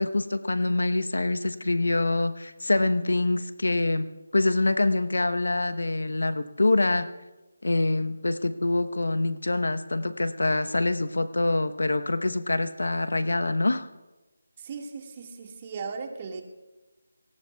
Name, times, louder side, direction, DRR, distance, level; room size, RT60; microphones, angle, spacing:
voice 1, 0.0-4.1 4.3-7.1 7.6-13.9, left 2 dB, 80° left, 11 dB, 1.0 m, -25 dB
voice 2, 14.6-16.4, right 5 dB, 30° right, 3 dB, 1.9 m, -37 dB
29.0 x 18.5 x 2.4 m, 1.1 s
figure-of-eight pair, 165°, 0 cm